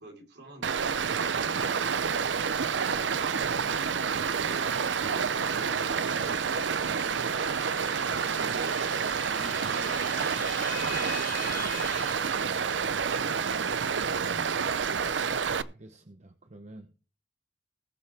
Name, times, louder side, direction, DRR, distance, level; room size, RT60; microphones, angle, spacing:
voice 1, 0.0-2.1 4.4-6.8 7.5-8.8 9.2-12.0 13.1-14.6, right 1 dB, 65° right, 2 dB, 4.0 m, -48 dB
Stream, 0.6-15.6, right 6 dB, 80° right, 0.6 m, -29 dB
sound 1, 5.2-13.1, left 7 dB, 45° left, 2.6 m, -44 dB
voice 2, 15.5-16.9, right 1 dB, 40° right, 7 dB, 0.9 m, -49 dB
20.0 x 7.0 x 3.5 m, 0.35 s
head